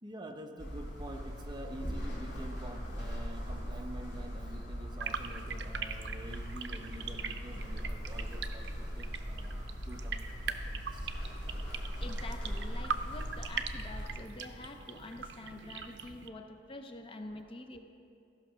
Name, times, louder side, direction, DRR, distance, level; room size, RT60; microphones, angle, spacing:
voice 1, 0.0-11.1, right 1 dB, 25° right, 4 dB, 0.7 m, -47 dB
sound 1, 0.6-14.1, equal, 70° left, 2.2 m, -40 dB
sound 2, 5.0-16.3, right 6 dB, 75° right, 0.5 m, -42 dB
voice 2, 12.0-17.8, left 2 dB, 30° left, 6 dB, 0.5 m, -46 dB
14.0 x 5.8 x 5.6 m, 2.7 s
head